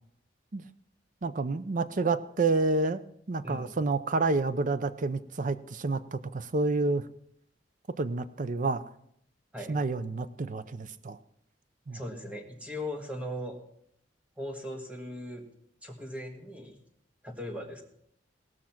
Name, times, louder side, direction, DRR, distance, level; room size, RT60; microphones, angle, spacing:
voice 1, 1.2-3.0 3.3-7.1 8.0-8.8 9.7-11.2 11.9-12.0, right 3 dB, 45° right, 13 dB, 0.6 m, -29 dB
voice 2, 3.4-3.8 9.5-9.8 11.9-13.6 14.4-15.5 15.8-16.8 17.2-17.8, left 1 dB, 10° right, 3 dB, 1.6 m, -38 dB
18.5 x 6.2 x 5.8 m, 0.73 s
head